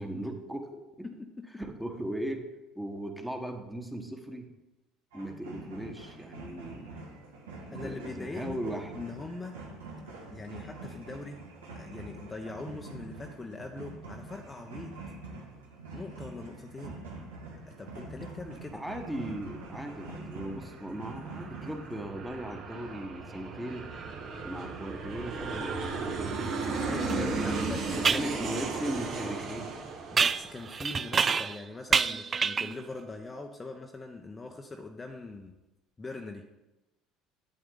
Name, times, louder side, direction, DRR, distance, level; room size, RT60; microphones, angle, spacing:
voice 1, 0.0-1.1 1.6-4.5 5.1-6.9 7.7-8.9 18.7-23.9 24.4-25.7 27.0-29.7, right 1 dB, 5° right, 4 dB, 1.4 m, -38 dB
voice 2, 1.0-1.5 7.7-8.6 8.9-9.6 10.3-11.4 11.7-14.9 15.9-17.0 17.8-18.8 26.8-28.4 30.1-35.5 36.0-36.6, left 3 dB, 20° left, 3 dB, 0.8 m, -42 dB
sound 1, 5.1-22.0, right 3 dB, 85° right, 1.6 m, -45 dB
Aircraft, 18.1-31.3, right 4 dB, 55° right, 1.6 m, -36 dB
sound 2, 27.1-27.2 28.0-28.3 30.2-31.6 31.9-32.8, right 5 dB, 35° right, 0.3 m, -27 dB
8.9 x 7.7 x 3.9 m, 1.0 s
hypercardioid pair, 70°, 0 cm